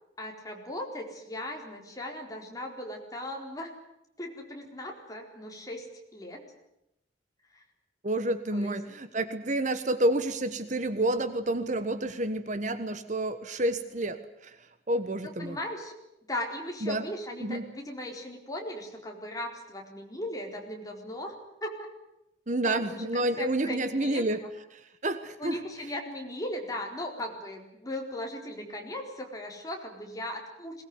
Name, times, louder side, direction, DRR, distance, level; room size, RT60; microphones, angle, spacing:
voice 1, 0.2-3.7 4.2-5.9 6.1-6.5 8.5-8.8 15.2-15.9 16.3-21.3 21.6-21.7 22.6-24.5 25.4-30.8, left 1 dB, 20° left, 1 dB, 4.2 m, -38 dB
voice 2, 8.0-14.6 14.9-15.6 16.8-17.1 17.4-17.7 22.5-24.4 24.7-25.6, right 1 dB, 45° right, 10 dB, 1.3 m, -29 dB
21.5 x 19.5 x 9.7 m, 0.84 s
head